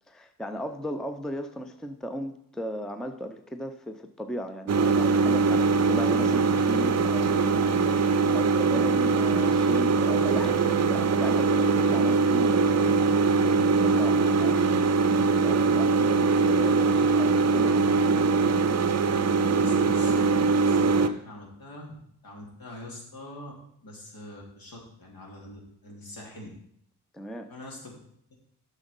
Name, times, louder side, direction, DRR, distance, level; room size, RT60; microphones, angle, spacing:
voice 1, 0.1-15.0 15.3-17.9 27.1-27.5, equal, ahead, 7 dB, 0.6 m, -37 dB
sound 1, 4.7-21.1, right 4 dB, 40° right, 0.6 m, -22 dB
voice 2, 19.5-21.9 22.2-23.5 23.8-26.5 27.5-28.0, left 1 dB, 60° left, -1 dB, 2.9 m, -44 dB
7.6 x 6.3 x 5.4 m, 0.69 s
cardioid pair, 75°, 39 cm